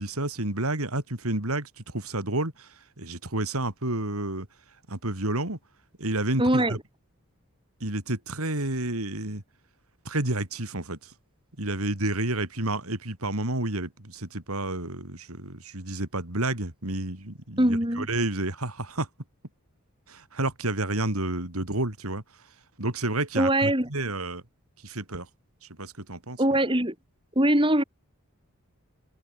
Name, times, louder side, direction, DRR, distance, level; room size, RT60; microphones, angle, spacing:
voice 1, 0.0-4.5 4.9-5.6 6.0-6.8 7.8-9.4 10.0-11.1 11.6-19.1 20.1-22.2 22.8-24.4 24.8-25.3 25.6-26.4, right 2 dB, 80° right, 4.0 m, -30 dB
voice 2, 6.4-6.8 17.6-18.1 23.4-23.9 26.4-26.9 27.3-27.8, right 1 dB, 20° right, 4.7 m, -22 dB
head